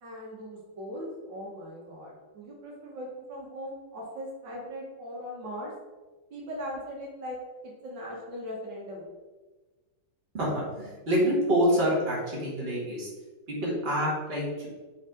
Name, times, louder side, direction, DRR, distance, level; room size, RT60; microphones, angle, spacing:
voice 1, 0.0-5.7 6.3-7.4 7.6-9.1, equal, 75° right, -3 dB, 1.8 m, -39 dB
voice 2, 10.3-13.1 13.5-14.7, equal, 35° right, -5 dB, 1.9 m, -27 dB
5.3 x 3.6 x 5.0 m, 1.3 s
omnidirectional pair, 2.0 m